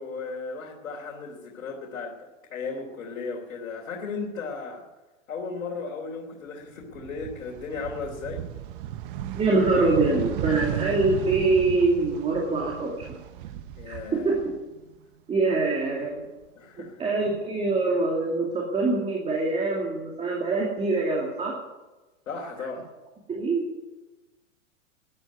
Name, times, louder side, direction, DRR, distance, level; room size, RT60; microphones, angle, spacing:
voice 1, 0.0-4.8 5.3-8.4 13.7-14.3 16.5-17.0 22.3-22.9, left 4 dB, 80° left, -2 dB, 3.3 m, -35 dB
sound 1, 6.8-14.9 15.3-16.5, right 11 dB, 40° right, 0.9 m, -35 dB
voice 2, 9.4-13.1 13.9-14.4 15.3-16.2 17.0-21.6 23.3-23.7, right 3 dB, 15° right, -2 dB, 2.5 m, -24 dB
13.0 x 11.0 x 9.4 m, 1.1 s
hypercardioid pair, 145°, 40 cm